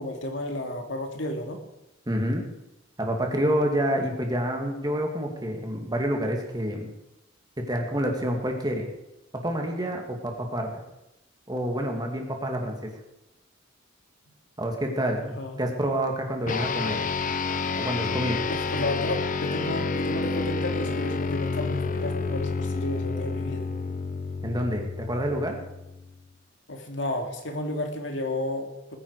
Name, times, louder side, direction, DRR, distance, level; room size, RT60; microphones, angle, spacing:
voice 1, 0.0-1.6 15.2-15.6 18.5-23.7 26.7-29.0, left 1 dB, 70° left, 3 dB, 2.4 m, -32 dB
voice 2, 2.1-2.4 3.0-6.9 7.6-8.9 9.3-10.8 11.5-12.9 14.6-15.2 15.6-17.0 17.8-18.5 24.4-25.6, equal, 20° right, 2 dB, 2.3 m, -28 dB
sound 1, 16.5-26.2, left 4 dB, 45° left, 0.7 m, -29 dB
20.0 x 10.0 x 4.9 m, 0.91 s
head